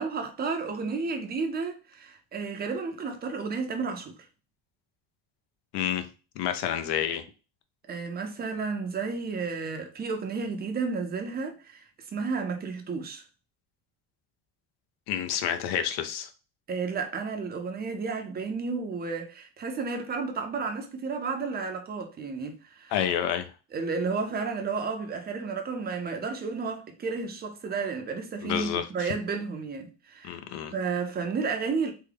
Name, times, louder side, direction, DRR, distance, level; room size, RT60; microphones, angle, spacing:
voice 1, 0.0-4.2 7.9-11.8 12.1-13.2 16.7-22.9 23.7-30.4 30.7-31.9, right 4 dB, 25° right, 0.5 m, -32 dB
voice 2, 5.7-6.1 6.4-7.2 15.1-16.3 22.9-23.5 28.4-29.1 30.2-30.7, left 9 dB, 65° left, 0.6 m, -29 dB
3.5 x 2.1 x 3.3 m
cardioid pair, 150°, 43 cm